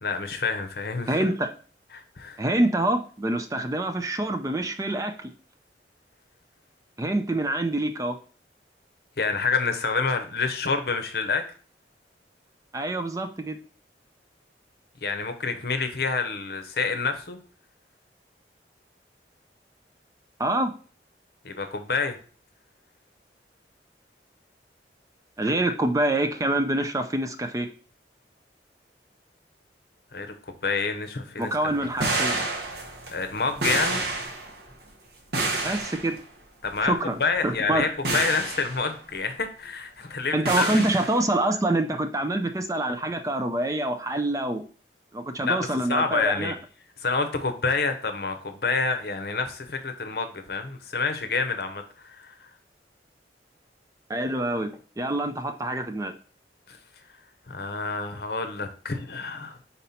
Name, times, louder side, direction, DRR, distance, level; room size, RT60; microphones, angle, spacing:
voice 1, 0.0-1.2 1.9-2.4 9.2-11.4 15.0-17.4 21.4-22.2 30.1-30.3 30.6-31.5 33.1-34.0 36.6-36.9 37.2-40.8 45.4-46.5 47.0-52.3 56.7-56.8 57.5-59.6, left 4 dB, 60° left, 7 dB, 0.8 m, -28 dB
voice 2, 1.1-1.5 2.4-5.3 7.0-8.2 12.7-13.6 20.4-20.7 25.4-27.7 31.4-32.4 35.6-36.2 36.8-37.2 37.4-37.9 40.3-44.6 45.1-46.6 54.1-56.1, right 1 dB, 20° right, 7 dB, 0.4 m, -26 dB
sound 1, 31.7-34.7 35.3-36.2 36.6-36.9 37.5-37.8 38.0-38.8 40.4-41.2, right 2 dB, 65° right, 1.2 m, -29 dB
5.4 x 4.2 x 4.2 m, 0.40 s
head